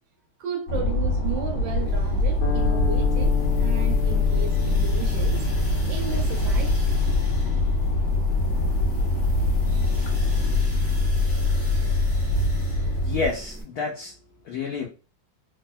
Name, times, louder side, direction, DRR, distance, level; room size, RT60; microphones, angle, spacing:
voice 1, 0.4-7.3, right 5 dB, 75° right, 1.5 m, -34 dB
sound 1, 0.7-13.3, left 2 dB, 50° left, 1.5 m, -23 dB
sound 2, 1.7-13.6, right 1 dB, 20° right, 0.3 m, -36 dB
sound 3, 2.4-10.8, left 10 dB, 35° left, 0.8 m, -36 dB
voice 2, 13.0-14.1 14.4-14.9, left 5 dB, 90° left, 0.8 m, -29 dB
3.5 x 2.0 x 2.2 m
omnidirectional pair, 2.3 m